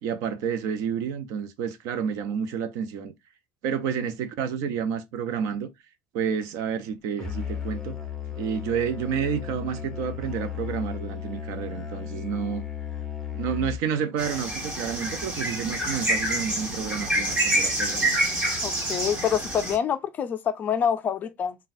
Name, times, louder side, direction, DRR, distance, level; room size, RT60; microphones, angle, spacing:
voice 1, 0.0-3.1 3.6-5.7 6.1-8.0 8.3-12.6 13.3-18.1, right 7 dB, 60° right, 0.6 m, -30 dB
Musical instrument, 7.2-14.0, left 8 dB, 10° left, 0.7 m, -34 dB
sound 1, 14.2-19.8, right 1 dB, 20° right, 1.4 m, -27 dB
voice 2, 18.6-21.6, left 8 dB, 30° left, 0.4 m, -26 dB
4.0 x 2.2 x 2.6 m
cardioid pair, 155°, 6 cm